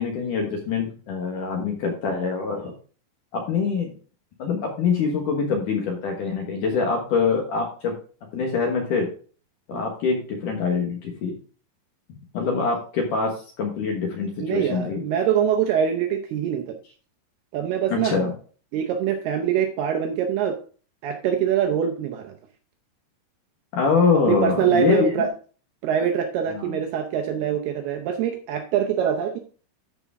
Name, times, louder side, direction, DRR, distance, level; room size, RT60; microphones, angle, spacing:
voice 1, 0.0-2.7 3.3-3.9 4.4-7.9 8.3-9.1 9.7-11.3 12.3-15.0 17.9-18.3 23.7-25.1 26.5-26.8, left 5 dB, 60° left, 1 dB, 2.3 m, -24 dB
voice 2, 14.4-16.8 17.5-18.2 18.7-20.6 21.0-22.3 24.3-25.3 25.8-29.4, right 8 dB, 80° right, 4 dB, 2.4 m, -24 dB
13.5 x 4.9 x 3.5 m, 0.39 s
omnidirectional pair, 5.3 m